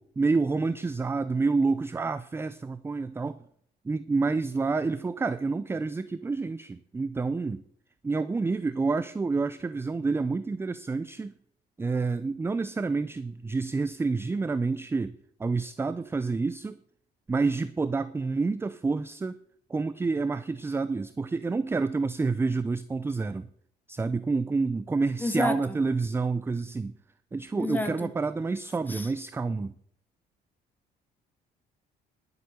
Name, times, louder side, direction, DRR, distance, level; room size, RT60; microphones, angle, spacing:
voice 1, 0.0-3.4 3.8-7.6 8.0-11.3 11.8-16.8 17.3-19.4 19.7-23.5 23.9-26.9 27.3-29.7, right 4 dB, 15° right, 0.4 m, -28 dB
voice 2, 25.2-25.8 27.6-28.1 28.9-29.1, left 2 dB, 10° left, 1.8 m, -30 dB
11.5 x 8.0 x 6.7 m
cardioid pair, 110°, 17 cm